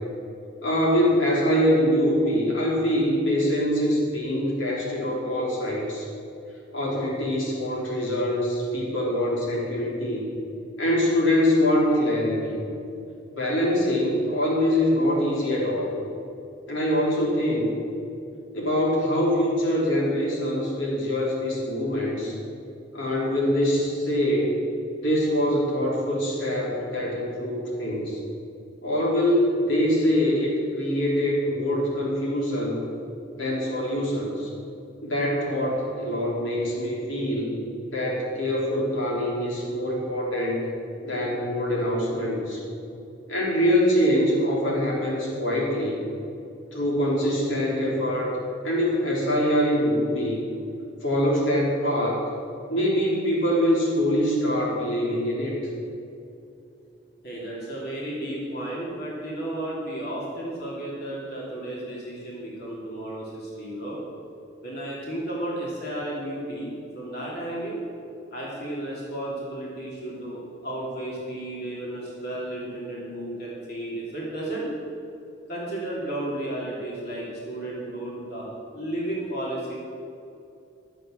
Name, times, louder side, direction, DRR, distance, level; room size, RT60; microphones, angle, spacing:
voice 1, 0.6-6.0 6.7-10.3 10.8-12.6 13.3-15.9 16.7-17.7 18.5-22.3 22.9-24.6 25.0-28.2 28.8-32.8 33.3-34.5 35.0-37.6 37.9-40.7 41.0-42.6 43.3-46.0 46.7-48.3 48.6-50.4 51.0-52.2 52.7-55.6, equal, 90° left, -5 dB, 3.6 m, -24 dB
voice 2, 57.2-64.0 64.6-67.8 68.3-74.7 75.5-78.4 78.7-79.8, right 1 dB, 55° left, -5 dB, 3.0 m, -33 dB
12.5 x 7.8 x 7.5 m, 2.6 s
head